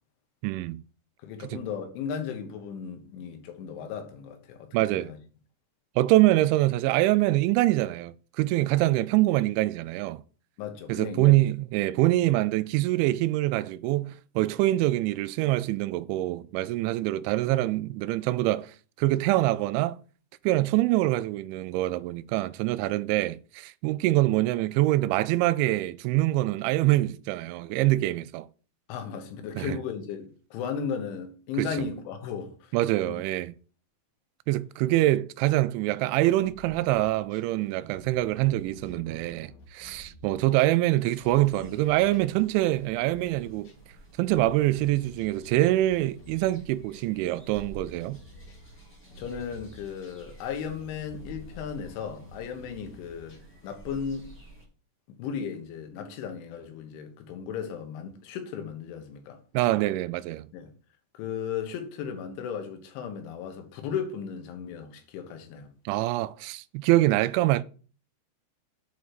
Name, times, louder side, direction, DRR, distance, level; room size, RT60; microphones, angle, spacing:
voice 1, 0.4-0.8 1.5-1.6 4.7-5.1 6.0-10.2 10.9-18.7 19.0-20.0 20.4-28.5 29.6-29.8 31.6-31.9 32.7-33.5 34.5-43.7 44.2-48.2 59.5-60.5 65.9-67.6, right 16 dB, 85° right, 2.9 m, -25 dB
voice 2, 1.2-5.2 10.6-11.5 28.9-32.8 33.0-33.2 49.2-54.3 55.2-59.4 60.5-60.7 61.1-65.7, left 7 dB, 85° left, 3.8 m, -36 dB
sound 1, 36.2-37.5 37.9-43.8 44.2-53.6 53.9-54.0, left 1 dB, 50° left, 2.2 m, -51 dB
sound 2, 41.0-54.6, right 2 dB, 5° left, 1.7 m, -51 dB
8.3 x 5.0 x 6.1 m
omnidirectional pair, 5.3 m